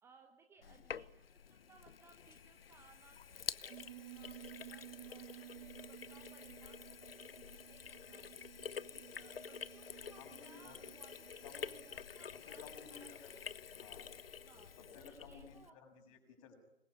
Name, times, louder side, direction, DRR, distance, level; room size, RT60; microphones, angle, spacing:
voice 1, 0.0-4.4 4.6-8.4 8.9-13.5 14.4-15.8, right 5 dB, 5° right, 6 dB, 1.1 m, -65 dB
Sink (filling or washing), 0.6-15.7, left 7 dB, 60° left, 1.0 m, -49 dB
Piano, 3.7-14.4, right 16 dB, 30° right, 1.3 m, -56 dB
voice 2, 10.2-10.9 11.4-11.7 12.3-13.3 13.7-14.2 14.8-16.5, left 5 dB, 30° left, 5 dB, 6.8 m, -57 dB
26.5 x 21.5 x 9.8 m, 0.95 s
figure-of-eight pair, 130°, 33 cm